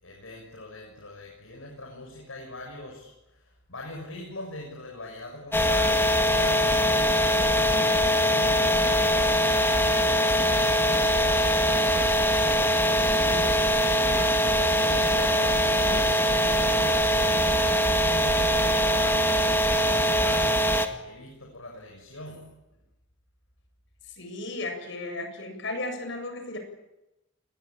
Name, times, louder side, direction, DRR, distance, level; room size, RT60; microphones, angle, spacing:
voice 1, 0.0-3.1 3.7-12.5 12.9-19.3 19.6-20.6 21.0-22.4, left 1 dB, 85° left, 0 dB, 6.7 m, -41 dB
sound 1, 5.5-20.9, equal, 10° left, 2.0 m, -22 dB
voice 2, 24.2-26.6, left 2 dB, 60° left, 6 dB, 7.8 m, -34 dB
27.5 x 21.5 x 8.9 m, 0.96 s
head